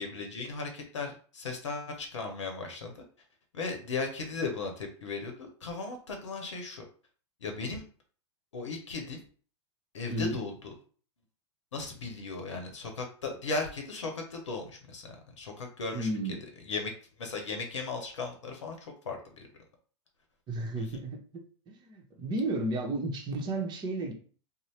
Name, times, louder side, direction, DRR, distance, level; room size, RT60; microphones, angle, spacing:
voice 1, 0.0-2.9 3.5-6.8 7.4-7.8 8.5-9.2 9.9-10.7 11.7-16.1 16.7-16.9 17.2-19.5 20.8-20.9, left 4 dB, 80° left, 3 dB, 0.7 m, -36 dB
voice 2, 10.1-10.4 15.9-16.4 20.5-24.1, right 2 dB, 30° right, 2 dB, 0.8 m, -33 dB
2.6 x 2.1 x 3.2 m, 0.42 s
hypercardioid pair, 100°, 15 cm